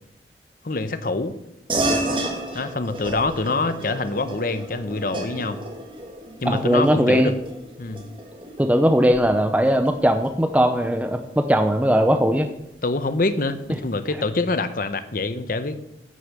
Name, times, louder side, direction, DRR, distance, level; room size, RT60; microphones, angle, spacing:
voice 1, 0.6-1.4 2.5-5.6 6.4-7.3 7.8-8.0 12.8-15.8, left 3 dB, 50° left, 11 dB, 0.9 m, -25 dB
sound 1, 1.7-11.6, right 1 dB, 30° right, 2.0 m, -32 dB
voice 2, 6.5-7.3 8.6-12.5, equal, 10° right, 7 dB, 0.6 m, -19 dB
11.0 x 6.7 x 6.7 m, 0.87 s
head